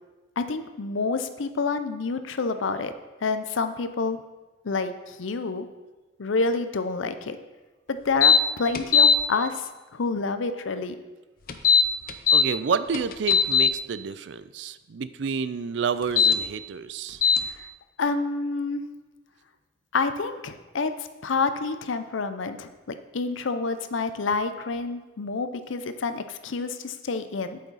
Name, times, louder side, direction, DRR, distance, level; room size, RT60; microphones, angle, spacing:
voice 1, 0.4-2.9 3.2-4.2 4.6-5.7 6.2-7.4 7.9-11.0 17.5-17.7 18.0-18.8 19.9-20.9 21.2-27.6, left 4 dB, 90° left, 10 dB, 0.6 m, -28 dB
sound 1, 8.2-8.4 8.7-9.2 11.5-12.4 12.9-13.7 16.0-16.3 17.2-17.4, left 6 dB, 45° left, 0.6 m, -18 dB
voice 2, 12.3-17.2, right 5 dB, 70° right, 14 dB, 0.4 m, -29 dB
8.4 x 8.4 x 4.1 m, 1.2 s
head